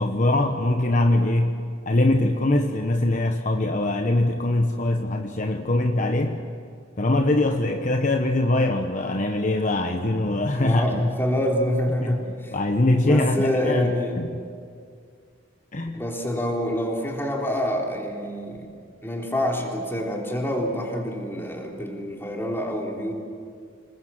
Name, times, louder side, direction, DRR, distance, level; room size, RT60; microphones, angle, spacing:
voice 1, 0.0-1.6 1.9-6.4 7.0-11.0 12.0-12.2 12.5-14.3 15.7-16.0, left 1 dB, 40° left, 4 dB, 1.1 m, -22 dB
voice 2, 10.6-12.5 13.0-14.1 15.9-18.7 19.0-23.1, equal, 10° left, 0 dB, 3.7 m, -26 dB
27.5 x 20.5 x 7.7 m, 2.2 s
head